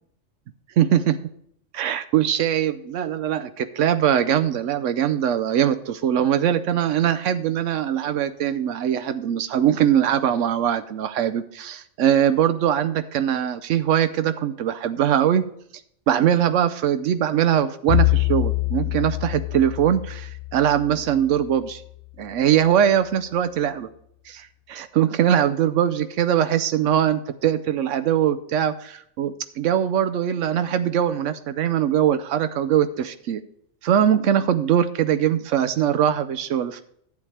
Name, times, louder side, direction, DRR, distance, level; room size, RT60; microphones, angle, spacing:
voice 1, 0.8-1.2 1.7-15.4 16.1-21.8 22.2-23.9 24.3-33.4 33.8-36.8, right 10 dB, 80° right, 11 dB, 0.9 m, -21 dB
Bowed string instrument, 17.9-22.1, left 21 dB, 65° left, 0.8 m, -25 dB
11.5 x 8.6 x 3.3 m, 0.68 s
omnidirectional pair, 1.3 m